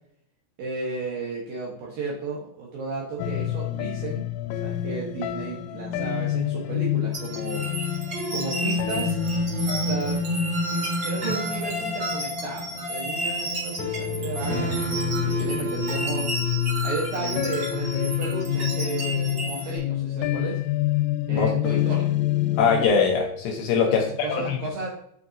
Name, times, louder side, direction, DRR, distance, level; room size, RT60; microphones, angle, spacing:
voice 1, 0.6-4.3 4.6-7.6 8.3-9.2 9.8-10.2 10.7-14.8 15.2-16.3 16.8-20.6 21.3-22.1 23.8-24.0 24.2-24.9, right 3 dB, 70° right, -3 dB, 2.3 m, -33 dB
sound 1, 3.2-13.4 13.8-22.9, left 12 dB, 90° left, 3.3 m, -28 dB
sound 2, 7.1-19.8, right 1 dB, 30° right, 2.5 m, -30 dB
voice 2, 22.6-24.6, left 5 dB, 75° left, 1 dB, 2.7 m, -22 dB
9.0 x 5.9 x 2.7 m, 0.71 s
omnidirectional pair, 5.7 m